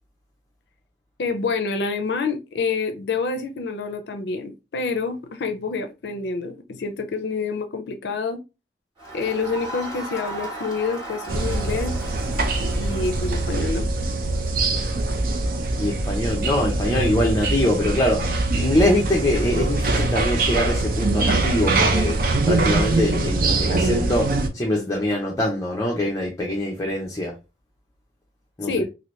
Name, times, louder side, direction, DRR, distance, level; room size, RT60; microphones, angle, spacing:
voice 1, 1.2-8.4 9.1-11.9 12.8-13.9 28.6-28.8, left 4 dB, 70° left, 0.4 m, -27 dB
Crowd, 9.0-13.8, right 1 dB, 25° right, 1.6 m, -36 dB
sound 1, 11.3-24.5, right 2 dB, 50° right, 0.5 m, -23 dB
voice 2, 15.8-18.2 18.5-22.2 22.5-27.3 28.6-28.8, left 1 dB, 20° left, 0.6 m, -23 dB
2.8 x 2.6 x 3.0 m
head